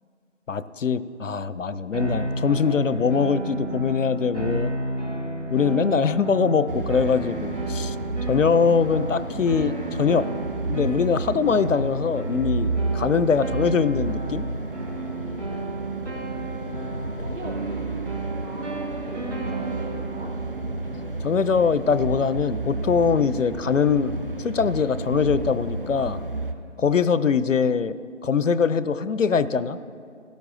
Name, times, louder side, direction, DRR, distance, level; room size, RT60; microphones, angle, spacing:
voice 1, 0.5-4.7 5.5-8.0 8.3-10.3 10.7-14.5 21.2-26.2 26.8-28.0 28.2-29.8, left 6 dB, 75° left, 15 dB, 0.6 m, -22 dB
sound 1, 1.9-21.2, right 2 dB, 65° right, 2.2 m, -33 dB
sound 2, 6.7-26.5, right 2 dB, 45° right, 0.6 m, -31 dB
voice 2, 15.8-16.5 17.1-17.8 18.4-20.3, right 2 dB, 85° right, -8 dB, 2.6 m, -39 dB
17.0 x 12.5 x 2.6 m, 2.3 s
figure-of-eight pair, 175°, 38 cm